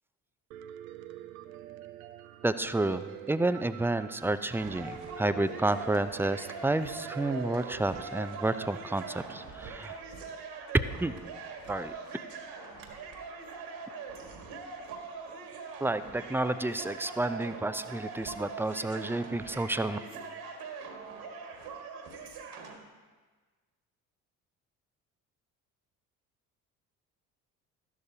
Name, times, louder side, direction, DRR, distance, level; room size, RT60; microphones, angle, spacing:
Piano, 0.5-9.2, right 13 dB, 80° right, 0.6 m, -46 dB
voice 1, 2.4-10.0 11.0-11.1 11.7-11.9 15.8-20.0, right 2 dB, 5° right, 12 dB, 0.5 m, -30 dB
sound 1, 4.5-22.8, right 4 dB, 65° right, 1.9 m, -43 dB
13.5 x 12.0 x 2.8 m, 1.4 s
hypercardioid pair, 50°, 42 cm